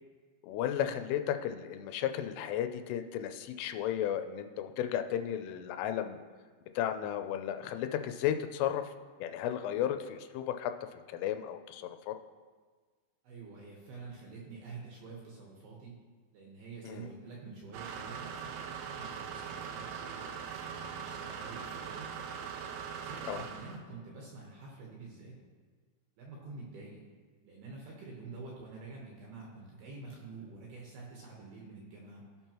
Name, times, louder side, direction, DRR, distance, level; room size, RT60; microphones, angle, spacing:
voice 1, 0.4-6.2 6.8-8.8 9.2-10.7 11.1-12.2 16.8-17.1 23.3-23.4, left 10 dB, 90° left, 8 dB, 3.1 m, -34 dB
voice 2, 13.2-16.0 16.3-22.1 23.0-25.3 26.2-27.0 27.4-32.2, right 3 dB, 70° right, -3 dB, 2.5 m, -48 dB
sound 1, 17.7-23.8, right 7 dB, 85° right, 3.2 m, -41 dB
16.0 x 5.4 x 3.0 m, 1.5 s
omnidirectional pair, 5.6 m